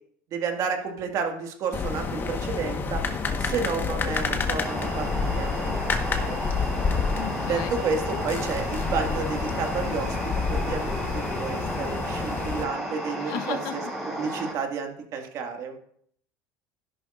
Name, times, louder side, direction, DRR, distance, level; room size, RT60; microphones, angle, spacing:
voice 1, 0.3-3.0 3.4-5.1 5.4-5.8 6.1-6.4 7.5-10.2 10.5-13.8 14.1-15.8, right 5 dB, 50° right, 4 dB, 1.9 m, -31 dB
sound 1, 1.7-12.6, left 5 dB, 30° left, 1.2 m, -29 dB
sound 2, 4.6-14.5, right 1 dB, 5° right, 4.0 m, -34 dB
voice 2, 7.1-7.7 13.2-13.8, left 11 dB, 60° left, 11 dB, 0.9 m, -34 dB
12.5 x 11.0 x 2.5 m, 0.65 s
supercardioid pair, 120°, 8 cm